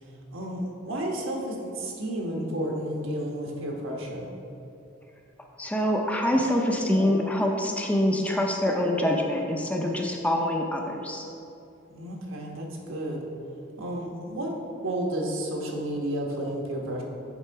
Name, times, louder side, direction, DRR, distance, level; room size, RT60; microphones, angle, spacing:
voice 1, 0.3-4.3 11.9-13.3 13.8-17.0, right 1 dB, 85° right, -1 dB, 1.2 m, -32 dB
voice 2, 5.6-11.2, left 1 dB, 5° left, 1 dB, 0.5 m, -25 dB
9.1 x 3.8 x 4.6 m, 2.7 s
head